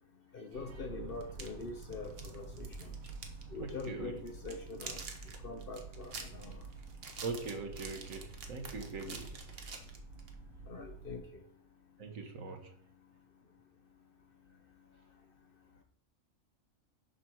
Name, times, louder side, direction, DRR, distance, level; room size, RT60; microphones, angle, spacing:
voice 1, 0.3-2.9 3.5-5.1 5.4-6.6 10.7-11.4, left 3 dB, 50° left, 6 dB, 0.8 m, -44 dB
sound 1, 0.5-11.2, right 4 dB, 90° right, 1.7 m, -49 dB
sound 2, 1.2-3.4 3.7-3.9 4.3-10.3, right 4 dB, 50° right, 1.2 m, -47 dB
voice 2, 3.6-4.1 7.2-9.3 12.0-12.7, right 3 dB, 75° right, 5 dB, 1.6 m, -41 dB
6.8 x 4.5 x 6.3 m, 0.64 s
omnidirectional pair, 1.4 m